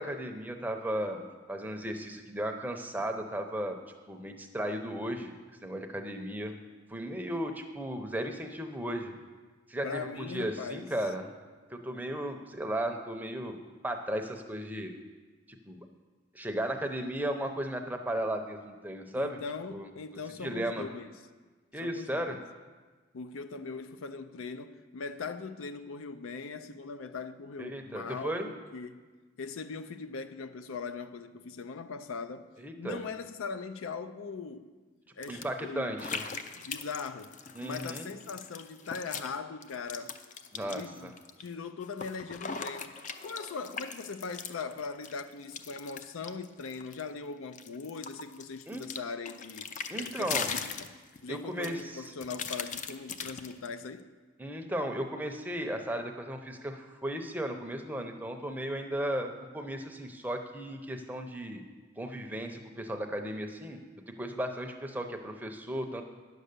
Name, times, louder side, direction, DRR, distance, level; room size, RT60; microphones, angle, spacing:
voice 1, 0.0-3.8 4.1-5.3 5.6-6.5 6.9-9.1 9.7-11.3 11.7-14.9 15.5-15.8 16.3-19.4 19.7-19.9 20.4-20.8 21.7-22.4 27.6-28.5 32.6-33.0 35.3-36.2 37.5-38.1 40.5-41.1 48.7-48.8 49.9-50.5 51.3-52.0 54.4-61.6 62.0-63.8 64.2-66.0, right 1 dB, 10° right, 0.6 m, -35 dB
voice 2, 9.8-10.9 19.1-21.1 21.8-22.4 23.1-29.0 29.4-32.5 32.8-34.7 35.1-35.8 36.5-40.2 40.6-43.0 43.2-49.7 50.0-50.9 51.2-54.1, left 4 dB, 85° left, 0.5 m, -40 dB
sound 1, 35.2-35.5 36.0-39.4 39.6-41.5 41.8-47.1 47.5-51.3 51.6-53.7, left 6 dB, 35° left, 0.4 m, -40 dB
9.9 x 6.6 x 6.7 m
head